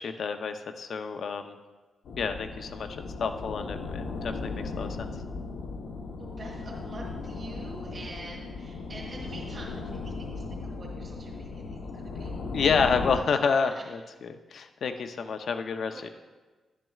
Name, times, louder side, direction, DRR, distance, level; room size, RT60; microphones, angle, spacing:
voice 1, 0.0-1.6 2.1-2.9 3.2-5.1 12.5-16.1, left 5 dB, 55° left, 7 dB, 0.6 m, -29 dB
sound 1, 2.1-13.2, left 3 dB, 80° left, 0.9 m, -37 dB
voice 2, 6.2-12.3 13.6-13.8 15.9-16.1, right 2 dB, 35° right, -8 dB, 2.5 m, -45 dB
12.0 x 10.5 x 2.4 m, 1.3 s
wide cardioid pair, 160°, 0 cm